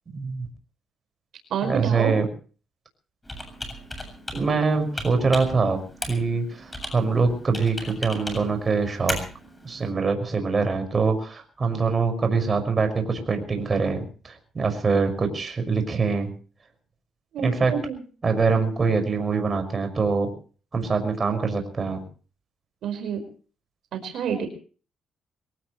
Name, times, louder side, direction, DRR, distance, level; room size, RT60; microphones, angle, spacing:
voice 1, 0.1-0.5 1.6-2.2 4.3-9.2 9.6-16.3 17.4-17.7 18.2-20.3 20.7-22.0, right 4 dB, 35° right, 6 dB, 6.0 m, -24 dB
voice 2, 1.5-2.1 17.3-18.0 22.8-23.2 23.9-24.5, right 7 dB, 75° right, 6 dB, 5.2 m, -28 dB
Computer keyboard, 3.2-9.9, left 1 dB, 15° left, 7.5 m, -37 dB
24.0 x 18.5 x 3.2 m, 0.39 s
cardioid pair, 90°, 0 cm